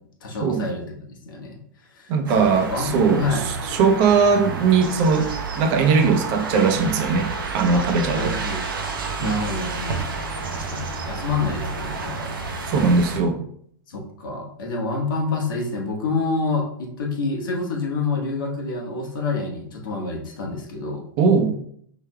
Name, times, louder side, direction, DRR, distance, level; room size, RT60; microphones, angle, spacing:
voice 1, 0.2-1.6 1.9-2.4 2.7-3.5 7.7-7.9 8.1-8.6 9.2-10.0 10.5-12.4 13.9-21.0, left 3 dB, 75° left, -1 dB, 1.2 m, -28 dB
voice 2, 2.1-8.4 9.2-9.4 12.7-13.4 21.2-21.6, right 5 dB, 45° right, 6 dB, 0.6 m, -20 dB
sound 1, 2.3-13.2, right 4 dB, 85° right, 0.6 m, -30 dB
4.5 x 3.3 x 2.2 m, 0.66 s
hypercardioid pair, 110°, 11 cm